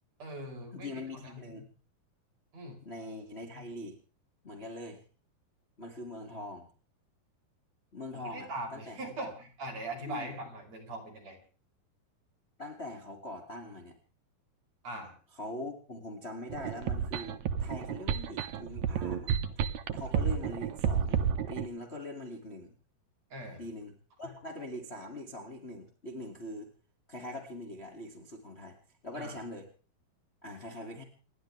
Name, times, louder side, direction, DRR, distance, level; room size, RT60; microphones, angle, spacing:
voice 1, 0.2-1.3 2.5-2.8 8.1-11.4 14.8-15.1 23.3-23.6 29.1-29.4, right 1 dB, 40° right, 2 dB, 5.9 m, -41 dB
voice 2, 0.7-1.7 2.8-4.0 4.4-5.0 5.8-6.7 7.9-9.3 10.1-10.3 12.6-14.0 15.3-19.4 19.9-22.7 23.6-26.7 27.1-28.8 29.0-29.7 30.4-31.0, left 1 dB, 20° left, 2 dB, 2.3 m, -42 dB
sound 1, 16.5-21.7, right 8 dB, 65° right, 1.8 m, -31 dB
29.0 x 12.0 x 3.4 m, 0.39 s
omnidirectional pair, 4.6 m